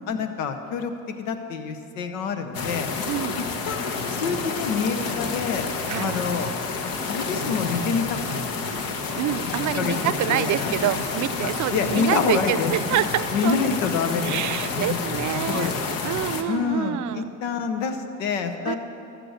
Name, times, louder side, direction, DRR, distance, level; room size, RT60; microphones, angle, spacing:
voice 1, 0.0-2.9 3.4-5.7 6.0-6.8 7.1-8.8 9.8-10.7 11.4-12.7 13.3-14.4 14.7-15.0 15.5-16.1 16.5-18.8, left 5 dB, 85° left, 7 dB, 0.9 m, -27 dB
sound 1, 2.5-16.4, left 4 dB, 65° left, 1.2 m, -29 dB
voice 2, 3.1-3.5 5.9-6.2 9.2-13.6 14.2-15.7 16.0-17.2 18.7-18.8, right 12 dB, 50° right, 15 dB, 0.6 m, -27 dB
14.0 x 6.7 x 7.9 m, 2.8 s
hypercardioid pair, 55°, 38 cm